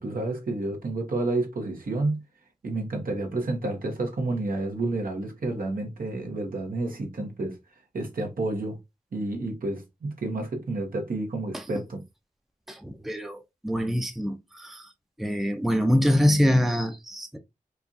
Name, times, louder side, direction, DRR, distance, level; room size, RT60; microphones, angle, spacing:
voice 1, 0.0-2.2 2.6-7.6 7.9-8.8 9.1-12.0, right 2 dB, 75° right, 1.1 m, -30 dB
voice 2, 12.7-14.9 15.2-17.4, equal, ahead, 0.6 m, -24 dB
4.5 x 2.4 x 2.6 m
wide cardioid pair, 55°, 15 cm